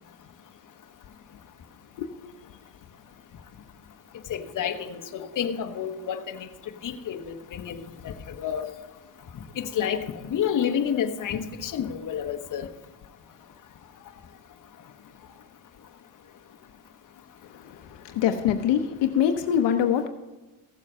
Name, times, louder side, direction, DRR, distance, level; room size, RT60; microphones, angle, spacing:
voice 1, 4.3-6.5 6.8-7.2 7.5-7.8 8.0-8.7 9.6-12.7, left 8 dB, 45° left, 5 dB, 1.2 m, -29 dB
voice 2, 17.5-20.1, left 9 dB, 70° left, 6 dB, 0.9 m, -24 dB
15.5 x 7.2 x 5.5 m, 1.2 s
cardioid pair, 115°, 44 cm